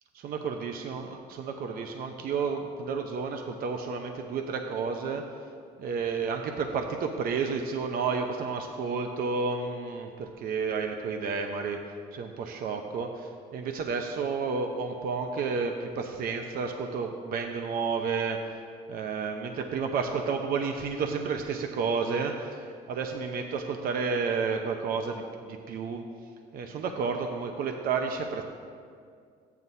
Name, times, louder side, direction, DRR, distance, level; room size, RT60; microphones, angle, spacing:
voice 1, 0.1-5.2 5.8-11.8 12.1-18.6 18.9-26.0 26.5-28.4, right 5 dB, 60° right, 4 dB, 0.7 m, -31 dB
13.5 x 9.4 x 2.7 m, 2.2 s
cardioid pair, 110°, 17 cm